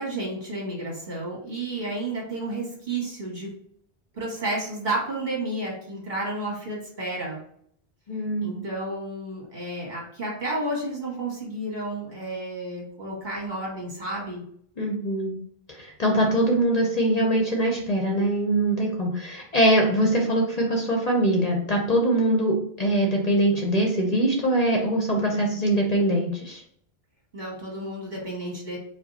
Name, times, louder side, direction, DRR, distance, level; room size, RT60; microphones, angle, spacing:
voice 1, 0.0-3.5 4.1-7.4 8.4-14.4 27.3-28.8, right 2 dB, 50° right, -4 dB, 1.6 m, -31 dB
voice 2, 8.1-8.5 14.8-15.4 15.7-26.6, right 1 dB, 45° left, 0 dB, 0.7 m, -23 dB
4.8 x 2.1 x 4.0 m, 0.66 s
omnidirectional pair, 1.0 m